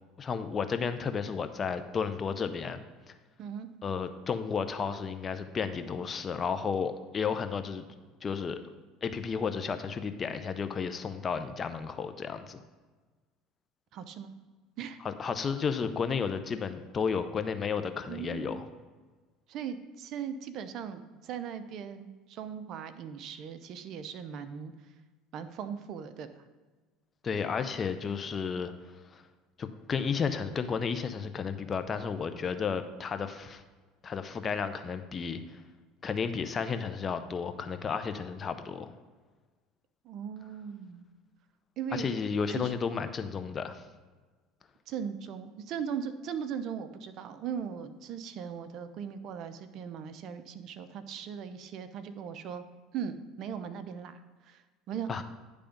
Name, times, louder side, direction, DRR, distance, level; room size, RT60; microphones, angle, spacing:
voice 1, 0.2-2.8 3.8-7.8 8.2-8.6 9.0-12.6 15.0-18.7 27.2-28.7 29.1-29.2 29.6-33.6 34.0-35.6 36.0-38.9 41.9-43.8 55.1-55.2, left 6 dB, 35° left, 9 dB, 0.6 m, -32 dB
voice 2, 13.9-14.3 14.8-15.0 18.1-18.6 19.5-24.9 25.3-26.4 40.0-41.0 41.8-42.1 42.5-42.7 44.9-52.6 52.9-55.2, right 7 dB, 55° right, 10 dB, 0.6 m, -39 dB
10.0 x 3.4 x 5.2 m, 1.3 s
supercardioid pair, 95°, 0 cm